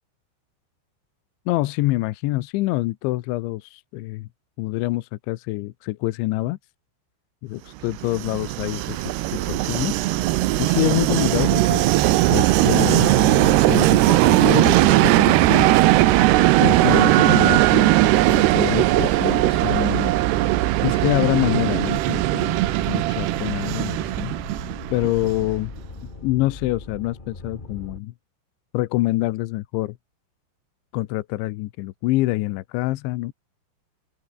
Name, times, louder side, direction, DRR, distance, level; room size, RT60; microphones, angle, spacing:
voice 1, 1.5-4.3 4.6-6.6 7.4-9.0 9.3-9.9 10.6-11.9 12.3-15.7 16.6-20.2 20.8-22.6 22.9-24.4 24.9-25.7 26.2-28.1 28.7-30.0 30.9-33.3, left 18 dB, 80° left, 3.0 m, -26 dB
Train, 7.9-25.6, right 17 dB, 75° right, 2.6 m, -19 dB
Wind instrument woodwind instrument, 8.6-13.1, left 3 dB, 30° left, 7.7 m, -52 dB
sound 1, 14.3-28.0, left 2 dB, 45° left, 0.6 m, -39 dB
open air
omnidirectional pair, 5.7 m